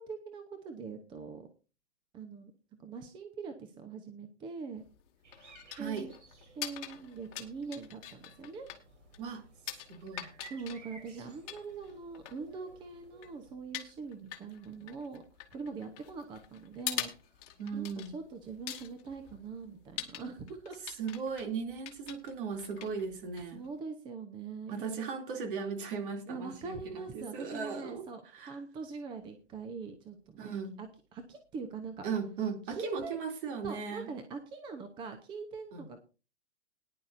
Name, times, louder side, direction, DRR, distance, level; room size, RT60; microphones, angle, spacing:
voice 1, 0.0-1.5 2.1-2.5 2.8-4.8 5.8-6.1 6.6-8.7 10.5-15.2 15.5-17.1 17.7-20.8 23.5-25.0 26.3-32.0 32.7-33.2 33.6-36.0, right 4 dB, 15° right, 0.8 m, -43 dB
sound 1, 4.8-23.8, left 12 dB, 30° left, 2.0 m, -45 dB
sound 2, 5.2-13.5, right 4 dB, 80° right, 4.8 m, -57 dB
voice 2, 5.7-6.1 9.2-9.4 9.9-10.3 17.6-18.1 21.0-23.7 24.7-28.6 30.4-30.8 32.0-34.1 35.7-35.9, right 5 dB, 45° right, 2.9 m, -37 dB
19.0 x 11.0 x 2.6 m
hypercardioid pair, 150°, 36 cm